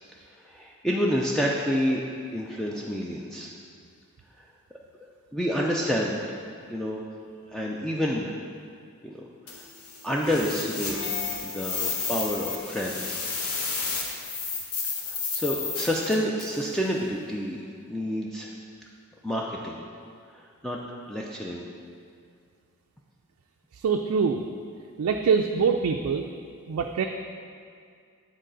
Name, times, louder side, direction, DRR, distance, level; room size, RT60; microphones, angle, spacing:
voice 1, 0.2-2.0 2.3-3.5 5.3-6.4 6.7-7.0 7.5-8.3 9.0-9.1 9.5-9.6 10.0-13.3 15.1-17.6 17.9-18.5 19.2-19.9 20.3-20.8 21.1-21.7, equal, ahead, -3 dB, 0.3 m, -29 dB
sound 1, 9.5-16.7, left 4 dB, 85° left, 1.0 m, -32 dB
voice 2, 23.7-24.4 25.0-26.3 26.7-27.0, right 5 dB, 75° right, 3 dB, 0.3 m, -24 dB
9.0 x 4.0 x 3.8 m, 2.2 s
head